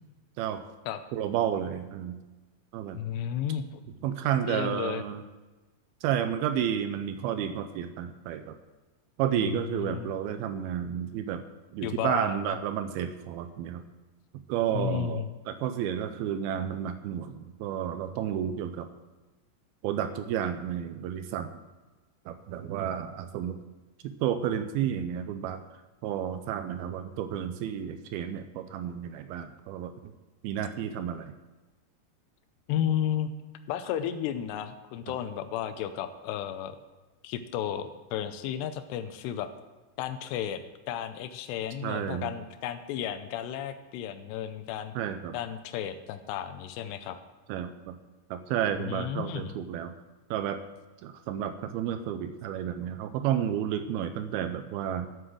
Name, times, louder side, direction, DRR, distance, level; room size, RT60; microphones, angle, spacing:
voice 1, 1.1-2.2 2.7-3.0 4.0-5.2 6.0-8.6 9.2-11.4 11.7-13.8 14.5-18.9 19.8-21.5 22.3-23.6 24.0-25.6 26.0-29.9 30.4-31.3 41.8-42.3 45.0-45.4 47.5-48.0 48.3-49.9 50.3-50.6 51.0-55.1, right 9 dB, 80° right, 9 dB, 2.3 m, -31 dB
voice 2, 2.9-3.7 4.4-5.0 9.3-10.1 11.8-12.6 14.7-15.3 32.7-33.3 33.7-36.8 37.2-39.5 40.0-44.9 45.3-47.2 48.8-49.6, left 10 dB, 90° left, 9 dB, 2.8 m, -33 dB
11.5 x 7.7 x 6.2 m, 1.2 s
omnidirectional pair, 4.8 m